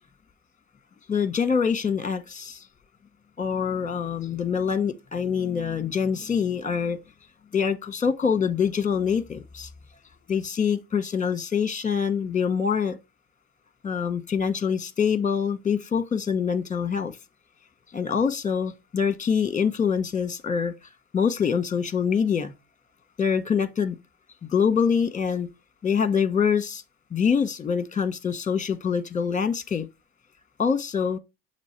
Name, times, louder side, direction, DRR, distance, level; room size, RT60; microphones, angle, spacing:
voice 1, 1.1-2.6 3.4-7.0 7.5-9.7 10.3-13.0 13.8-17.1 17.9-20.7 21.1-22.5 23.2-23.9 24.5-25.5 25.8-26.8 27.1-29.9 30.6-31.2, left 6 dB, 20° left, 1.0 m, -25 dB
7.4 x 3.2 x 4.4 m
hypercardioid pair, 75°, 41 cm